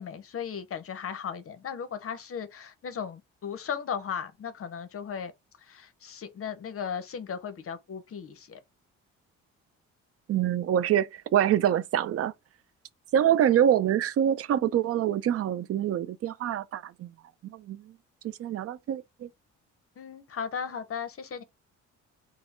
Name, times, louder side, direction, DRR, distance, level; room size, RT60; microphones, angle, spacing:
voice 1, 0.0-5.3 5.6-8.6 20.0-21.4, left 7 dB, 50° left, 0.7 m, -36 dB
voice 2, 10.3-12.3 13.1-17.1 17.4-17.8 18.4-19.3, right 10 dB, 50° right, 0.5 m, -25 dB
4.2 x 2.0 x 4.2 m
cardioid pair, 90°, 30 cm